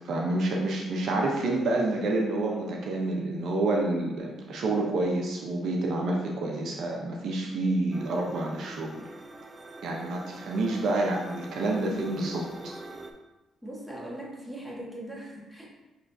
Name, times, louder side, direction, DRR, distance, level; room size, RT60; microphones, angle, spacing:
voice 1, 0.0-8.9 9.8-12.7, right 2 dB, 70° right, 0 dB, 0.7 m, -28 dB
sound 1, 7.9-13.1, right 2 dB, 25° right, 0.5 m, -45 dB
voice 2, 13.6-15.7, right 1 dB, 5° right, -4 dB, 1.4 m, -40 dB
6.0 x 3.2 x 2.7 m, 1.1 s
cardioid pair, 90°, 0 cm